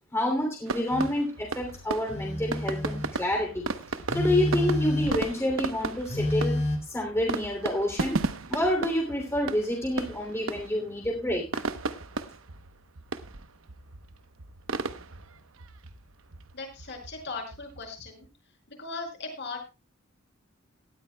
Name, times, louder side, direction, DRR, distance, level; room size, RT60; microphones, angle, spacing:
voice 1, 0.1-3.7 4.1-6.6 6.9-8.2 8.5-11.5, left 1 dB, 15° left, 1 dB, 2.9 m, -28 dB
sound 1, 0.7-18.3, right 3 dB, 70° right, 1.0 m, -36 dB
Telephone, 0.9-1.2 2.1-3.2 4.1-5.3 6.1-6.8, left 1 dB, 35° left, 3.3 m, -28 dB
voice 2, 16.5-18.3 18.7-19.6, left 3 dB, 55° left, 2 dB, 5.6 m, -38 dB
18.5 x 13.0 x 2.3 m, 0.27 s
head